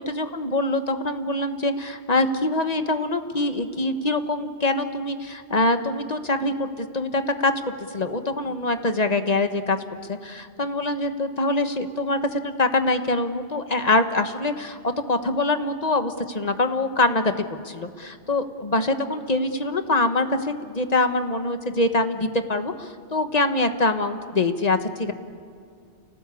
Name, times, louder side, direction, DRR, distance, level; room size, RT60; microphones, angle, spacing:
voice 1, 0.0-9.8 10.1-25.1, left 2 dB, 35° left, 8 dB, 1.4 m, -24 dB
30.0 x 18.5 x 8.4 m, 2.4 s
omnidirectional pair, 1.2 m